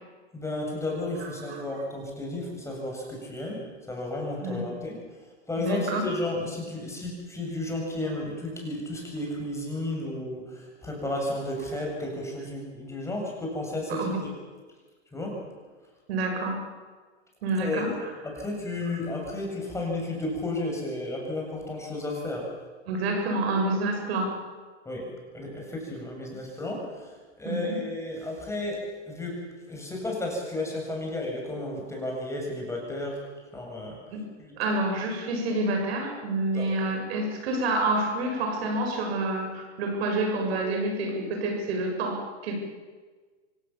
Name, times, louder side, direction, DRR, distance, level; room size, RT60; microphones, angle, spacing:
voice 1, 0.3-5.0 5.5-14.3 15.1-15.4 17.6-17.9 18.2-22.5 24.9-33.2 33.5-34.0 36.5-36.7, left 1 dB, 10° left, 0 dB, 7.5 m, -33 dB
voice 2, 1.2-1.6 4.4-4.6 5.6-6.0 13.9-14.2 16.1-16.6 17.4-18.1 22.9-24.3 27.4-27.8 34.1-34.2 34.6-42.5, right 2 dB, 60° right, 3 dB, 7.3 m, -28 dB
25.5 x 18.0 x 7.3 m, 1.4 s
hypercardioid pair, 115°, 35 cm